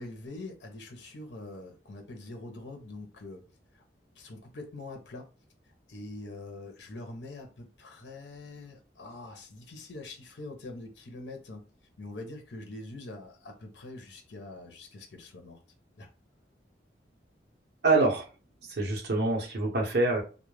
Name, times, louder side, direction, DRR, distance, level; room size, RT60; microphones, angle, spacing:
voice 1, 0.0-3.4 3.7-3.8 4.1-5.3 5.9-11.7 12.0-15.6 16.0-16.1, left 2 dB, 80° left, 0.6 m, -44 dB
voice 2, 17.8-18.3 18.6-20.2, right 3 dB, 65° right, 0.8 m, -25 dB
2.3 x 2.1 x 3.1 m
head